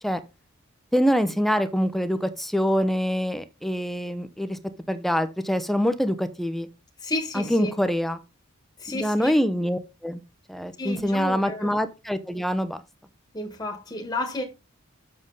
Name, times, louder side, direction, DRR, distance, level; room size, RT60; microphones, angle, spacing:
voice 1, 0.9-4.6 4.9-6.7 7.3-8.2 8.9-10.2 10.5-12.8, equal, ahead, 0.7 m, -25 dB
voice 2, 7.0-7.7 8.8-9.4 10.8-11.7 13.3-14.4, left 2 dB, 20° left, 1.4 m, -31 dB
7.6 x 6.7 x 3.9 m
head